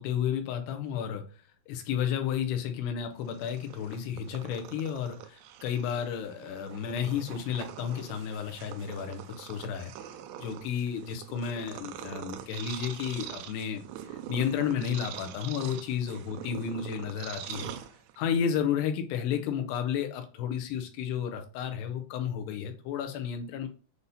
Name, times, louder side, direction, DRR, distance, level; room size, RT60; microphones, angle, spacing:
voice 1, 0.0-1.4 1.7-10.1 10.4-17.7 18.2-23.7, left 8 dB, 80° left, 6 dB, 2.6 m, -32 dB
Purr, 3.2-18.4, right 10 dB, 85° right, 2.8 m, -44 dB
8.2 x 2.8 x 5.3 m, 0.37 s
omnidirectional pair, 5.1 m